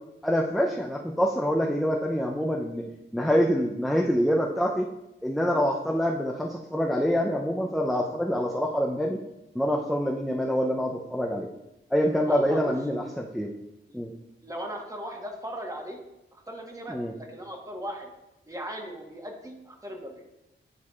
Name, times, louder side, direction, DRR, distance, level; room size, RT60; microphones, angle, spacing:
voice 1, 0.2-2.9 3.1-4.9 5.2-9.2 9.5-11.5 11.9-13.5 13.9-14.1 16.9-17.1, equal, ahead, 0 dB, 0.5 m, -26 dB
voice 2, 12.2-12.7 13.9-14.0 14.4-16.0 16.5-18.1 18.5-20.2, equal, 15° right, 1 dB, 1.1 m, -37 dB
9.7 x 4.6 x 2.3 m, 0.92 s
wide cardioid pair, 95°, 21 cm